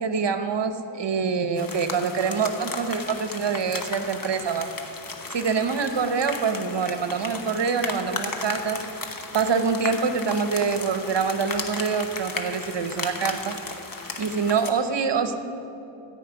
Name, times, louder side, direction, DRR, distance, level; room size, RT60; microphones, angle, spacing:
voice 1, 0.0-4.7 5.3-8.8 9.3-13.6 14.2-15.4, right 5 dB, 60° right, 8 dB, 0.9 m, -25 dB
sound 1, 1.5-14.7, left 3 dB, 40° left, 1.1 m, -35 dB
14.0 x 5.4 x 8.9 m, 2.8 s
wide cardioid pair, 110°, 49 cm